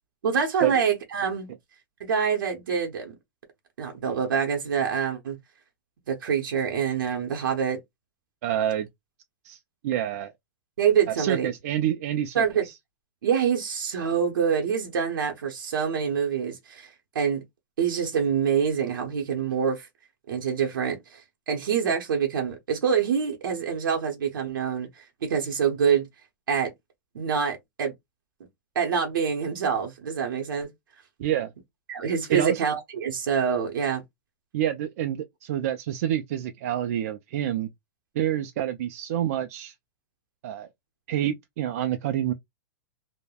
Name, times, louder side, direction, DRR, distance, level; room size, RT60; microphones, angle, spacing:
voice 1, 0.2-1.5 2.0-3.1 3.8-5.4 6.1-7.8 10.8-11.5 12.3-12.6 13.2-16.9 17.1-17.4 17.8-19.9 20.3-26.1 26.5-26.7 27.1-27.9 28.7-30.7 31.9-34.0, right 7 dB, 85° right, 0.8 m, -26 dB
voice 2, 8.4-8.9 9.4-10.3 11.1-12.7 31.2-31.5 32.3-32.6 34.5-37.7 38.2-39.7 40.4-40.7 41.1-42.3, right 11 dB, 45° right, 0.3 m, -27 dB
3.3 x 2.1 x 2.2 m
hypercardioid pair, 160°, 11 cm